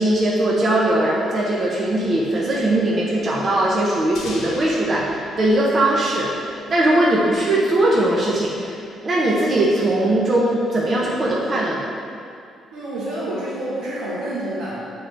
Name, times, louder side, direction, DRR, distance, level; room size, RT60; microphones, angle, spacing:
voice 1, 0.0-11.9, right 1 dB, 30° right, -4 dB, 0.6 m, -20 dB
sound 1, 4.1-6.9, left 2 dB, 75° left, 0.9 m, -39 dB
voice 2, 12.7-14.8, right 1 dB, 85° right, -9 dB, 1.2 m, -28 dB
7.6 x 3.9 x 3.3 m, 2.4 s
cardioid pair, 180°, 0 cm